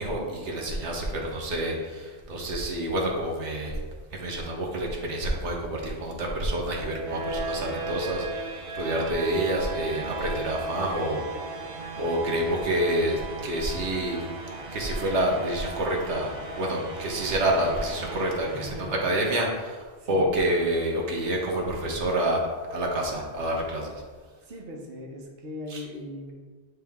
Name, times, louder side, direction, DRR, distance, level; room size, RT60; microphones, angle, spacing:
voice 1, 0.0-3.8 4.1-11.3 12.0-14.2 14.7-18.7 19.0-22.4 22.7-23.9 25.7-25.8, right 1 dB, 85° right, -1 dB, 1.3 m, -28 dB
sound 1, 6.4-19.3, right 3 dB, 40° right, 0.6 m, -37 dB
voice 2, 18.5-19.2 20.0-20.3 24.4-26.3, left 1 dB, 60° right, -1 dB, 1.2 m, -39 dB
9.6 x 3.4 x 3.5 m, 1.4 s
omnidirectional pair, 1.1 m